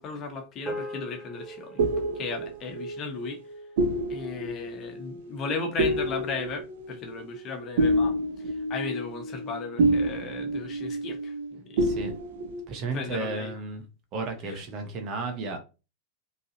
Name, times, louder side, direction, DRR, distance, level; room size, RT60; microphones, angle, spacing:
voice 1, 0.0-1.8 2.1-3.4 4.1-8.1 8.4-11.8 12.9-13.5 14.4-14.6, left 4 dB, 30° left, 1.3 m, -36 dB
sound 1, 0.7-5.2, equal, 15° right, 1.5 m, -43 dB
sound 2, 1.4-11.5 11.8-12.6, right 1 dB, 55° right, 0.8 m, -29 dB
voice 2, 11.8-12.1 12.7-13.9 14.1-15.6, right 3 dB, 35° right, 1.2 m, -33 dB
5.3 x 3.4 x 2.8 m
figure-of-eight pair, 90°, 0 cm